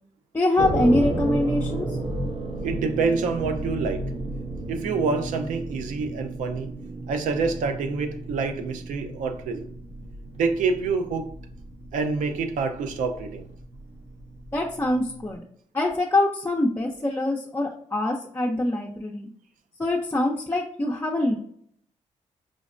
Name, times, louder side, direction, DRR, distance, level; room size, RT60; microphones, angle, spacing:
voice 1, 0.3-2.0 14.5-15.4 15.7-19.3 19.8-21.4, left 1 dB, 15° left, 0.5 m, -24 dB
sound 1, 0.6-15.4, right 2 dB, 65° right, 0.9 m, -33 dB
voice 2, 2.6-4.1 4.7-6.7 7.1-9.7 10.4-11.3 11.9-13.4, right 4 dB, 90° right, 0.4 m, -27 dB
5.0 x 2.1 x 2.4 m
cardioid pair, 75°, 13 cm